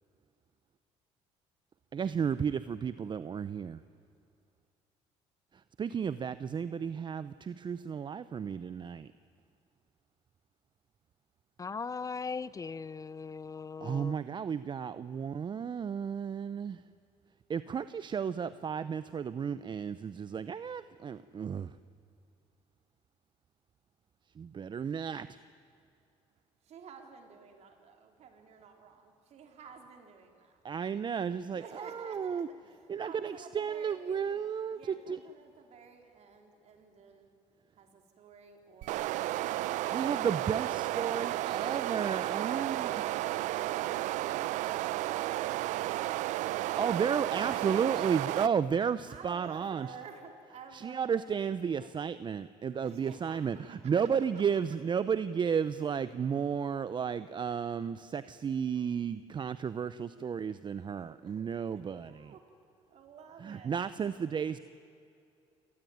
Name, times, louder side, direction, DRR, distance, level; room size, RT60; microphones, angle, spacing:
voice 1, 1.9-3.8 5.5-9.1 13.8-16.8 17.5-21.7 24.4-25.3 30.6-32.5 32.9-35.2 39.9-42.9 46.8-49.9 50.7-62.3 63.4-64.6, right 7 dB, 40° right, 0.7 m, -33 dB
voice 2, 11.6-14.1, left 5 dB, 25° left, 0.6 m, -39 dB
voice 3, 26.6-30.6 31.5-37.3 37.7-39.2 42.4-44.4 44.7-48.5 49.1-51.4 51.7-51.9 52.8-53.4 53.7-54.6 61.1-62.5 62.9-63.7, right 6 dB, 60° right, 4.2 m, -51 dB
sound 1, 38.8-48.5, right 15 dB, 75° right, 0.6 m, -33 dB
28.0 x 18.5 x 9.5 m
supercardioid pair, 90°, 13 cm